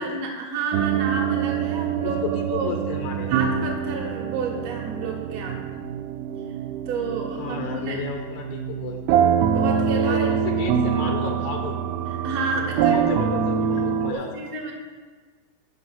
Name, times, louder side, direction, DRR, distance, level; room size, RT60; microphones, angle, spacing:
voice 1, 0.0-2.7 3.3-5.6 6.9-8.0 9.5-10.4 12.1-13.0 14.0-14.7, right 4 dB, 50° right, -1 dB, 2.2 m, -30 dB
sound 1, 0.7-14.1, right 8 dB, 90° right, 2.6 m, -25 dB
voice 2, 2.0-3.3 7.4-9.2 10.0-11.7 12.5-14.3, left 6 dB, 75° left, 3 dB, 1.8 m, -33 dB
10.5 x 6.1 x 5.7 m, 1.4 s
omnidirectional pair, 4.5 m